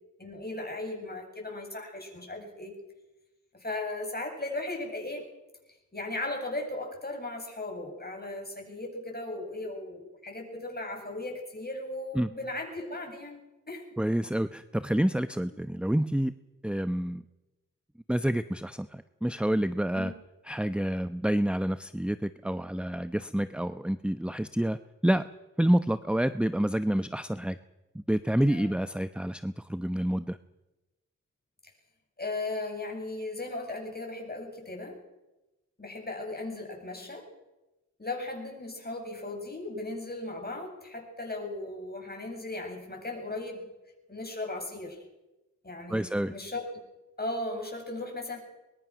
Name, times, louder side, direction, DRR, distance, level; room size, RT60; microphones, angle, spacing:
voice 1, 0.2-2.7 3.5-5.3 5.9-13.4 13.7-13.9 19.9-20.2 28.4-28.7 32.2-35.0 35.8-37.3 38.0-43.7 44.1-45.0 45.6-46.7 47.2-48.4, left 2 dB, 30° left, 1 dB, 8.0 m, -37 dB
voice 2, 14.0-16.3 16.6-17.2 18.1-20.1 20.4-24.8 25.0-25.3 25.6-27.6 27.9-30.4 45.9-46.3, right 1 dB, 5° right, 11 dB, 0.9 m, -28 dB
23.0 x 21.5 x 6.3 m, 1.0 s
cardioid pair, 45°, 31 cm